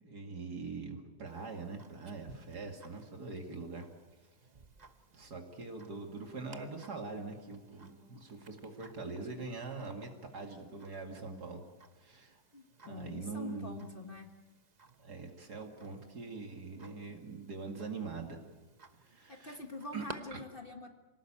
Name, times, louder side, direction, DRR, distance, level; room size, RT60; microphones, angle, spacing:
voice 1, 0.0-3.9 5.1-11.6 12.0-12.4 12.8-13.9 15.0-18.4 19.0-19.6 19.9-20.0 20.3-20.4, right 4 dB, 70° right, 3 dB, 2.7 m, -43 dB
Tick-tock, 1.3-20.1, right 4 dB, 30° right, 1.0 m, -58 dB
sound 1, 5.8-11.7 12.2-12.4 12.7-13.0, left 1 dB, 5° right, 4.9 m, -65 dB
voice 2, 12.5-14.3 19.3-20.9, left 2 dB, 35° left, 4 dB, 1.7 m, -45 dB
26.5 x 18.5 x 8.8 m, 1.2 s
omnidirectional pair, 1.8 m